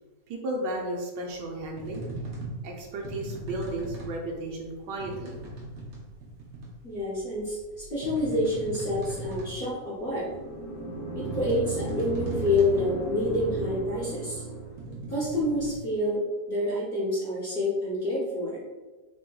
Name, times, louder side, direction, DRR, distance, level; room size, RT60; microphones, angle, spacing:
voice 1, 0.3-2.0 2.6-5.3, right 1 dB, 80° right, 0 dB, 1.3 m, -34 dB
sound 1, 1.3-15.8, right 2 dB, 60° right, 1.1 m, -40 dB
voice 2, 6.8-10.3 11.1-14.4 15.1-16.2 16.5-18.6, left 1 dB, 40° left, -8 dB, 0.9 m, -28 dB
sound 2, 10.0-14.9, right 3 dB, 75° left, 1.6 m, -35 dB
4.3 x 2.8 x 2.2 m, 1.2 s
omnidirectional pair, 2.0 m